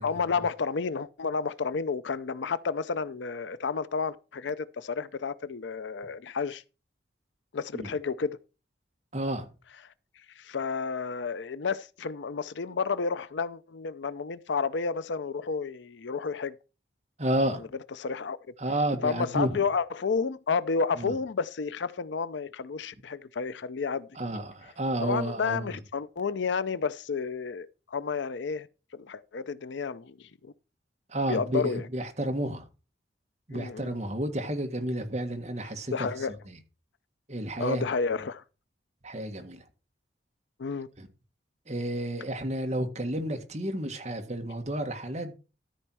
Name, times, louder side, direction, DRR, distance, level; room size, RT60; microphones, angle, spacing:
voice 1, 0.0-6.6 7.5-8.4 10.4-16.6 18.0-18.4 19.0-24.1 25.0-28.7 28.9-30.5 31.3-31.9 33.5-33.9 35.9-36.3 37.6-38.4 40.6-40.9, left 5 dB, 85° left, 0.5 m, -31 dB
voice 2, 9.1-9.5 17.2-17.6 18.6-19.6 21.0-21.1 24.1-25.8 31.1-32.6 33.5-36.1 36.5-36.6 37.3-37.9 39.0-39.6 41.0-41.1 41.7-45.3, right 1 dB, 40° right, 1.6 m, -31 dB
13.0 x 4.4 x 6.2 m
head